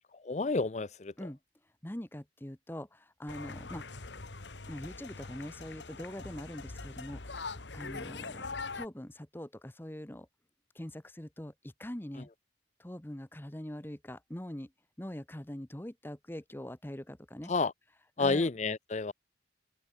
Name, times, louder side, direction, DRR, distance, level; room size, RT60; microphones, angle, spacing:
voice 1, 0.2-1.1 17.5-17.7 18.2-19.1, left 3 dB, 40° left, 0.5 m, -30 dB
voice 2, 1.8-3.9 4.7-10.3 10.7-12.3 12.8-14.7 15.0-17.5 18.2-18.5, left 1 dB, 10° left, 0.9 m, -43 dB
sound 1, 3.3-8.9, left 3 dB, 75° left, 1.6 m, -43 dB
open air
head